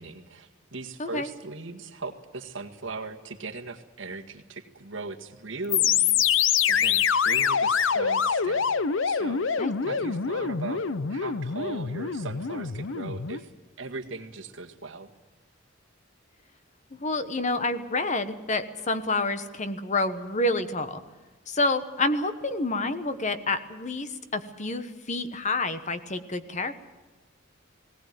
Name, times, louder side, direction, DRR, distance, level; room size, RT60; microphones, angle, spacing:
voice 1, 0.0-8.7 9.0-10.8 11.1-13.5 13.8-15.1, right 3 dB, 70° right, 4 dB, 1.8 m, -39 dB
sound 1, 5.7-13.4, left 7 dB, 70° left, 0.7 m, -25 dB
voice 2, 16.9-21.0 21.5-26.7, left 2 dB, 35° left, 10 dB, 1.2 m, -28 dB
18.5 x 18.5 x 9.3 m, 1.2 s
head